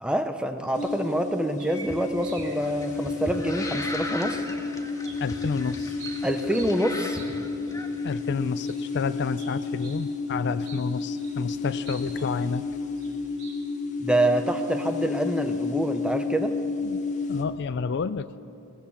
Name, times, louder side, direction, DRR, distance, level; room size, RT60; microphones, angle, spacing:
voice 1, 0.0-4.4 6.2-7.2 14.0-16.5, right 1 dB, 5° right, 6 dB, 0.8 m, -26 dB
sound 1, 0.6-2.7 3.1-4.1 4.7-5.5 5.8-7.4 7.7-7.8 8.6-10.0 10.3-10.4 10.6-12.5 13.0-13.1 13.4-13.5, right 4 dB, 70° right, 4.6 m, -45 dB
sound 2, 0.7-17.4, left 4 dB, 35° left, 1.7 m, -31 dB
sound 3, 1.8-8.1, left 1 dB, 15° left, 1.6 m, -38 dB
voice 2, 5.2-6.0 8.0-12.7 16.8-17.0 17.3-18.4, left 5 dB, 55° left, 12 dB, 0.4 m, -30 dB
22.0 x 19.0 x 7.2 m, 2.6 s
head